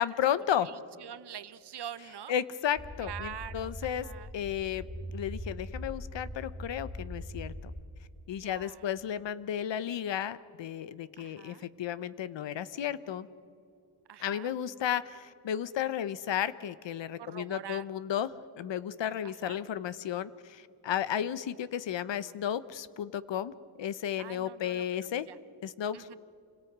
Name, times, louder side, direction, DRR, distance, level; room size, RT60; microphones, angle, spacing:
voice 1, 0.0-0.7 2.3-4.1 4.3-7.7 8.3-13.3 14.2-18.3 18.6-23.5 23.8-25.3 25.6-26.2, left 10 dB, 65° left, 16 dB, 0.9 m, -33 dB
voice 2, 0.6-2.3 3.0-4.3 8.4-8.8 11.2-11.7 14.1-14.5 17.2-17.9 19.2-19.6 24.2-24.8 25.2-25.4 25.9-26.2, right 9 dB, 55° right, 14 dB, 1.0 m, -45 dB
sound 1, 2.8-7.8, equal, 10° left, 1.8 m, -41 dB
28.5 x 26.0 x 6.1 m, 2.5 s
wide cardioid pair, 125°, 48 cm